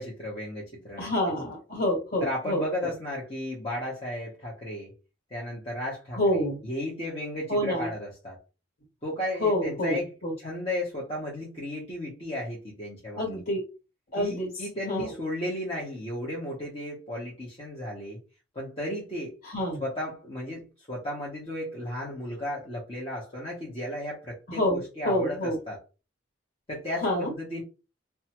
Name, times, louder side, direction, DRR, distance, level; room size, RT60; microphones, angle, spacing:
voice 1, 0.0-1.1 2.2-4.9 5.3-8.4 9.0-10.1 10.4-13.4 14.2-18.2 18.5-19.3 19.8-25.8 26.7-27.6, left 1 dB, 30° left, -6 dB, 0.9 m, -34 dB
voice 2, 1.0-2.9 6.1-6.6 7.5-7.9 9.4-10.3 13.1-13.6 14.1-14.5 14.9-15.1 19.5-19.8 24.5-25.6 27.0-27.3, left 1 dB, 50° left, -1 dB, 1.5 m, -27 dB
2.7 x 2.2 x 2.9 m, 0.31 s
head